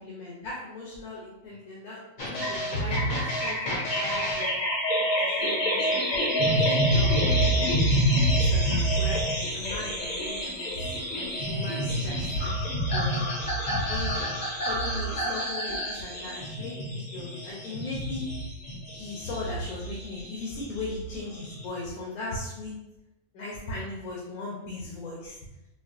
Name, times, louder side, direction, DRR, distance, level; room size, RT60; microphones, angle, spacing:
voice 1, 0.0-4.5 5.2-9.2 9.5-12.6 12.9-13.4 13.9-14.1 14.6-18.3 18.9-22.7 23.3-25.4, left 2 dB, 85° left, -5 dB, 1.3 m, -38 dB
sound 1, 2.2-21.7, equal, 50° left, 0.6 m, -27 dB
4.7 x 2.0 x 2.6 m, 0.90 s
omnidirectional pair, 1.5 m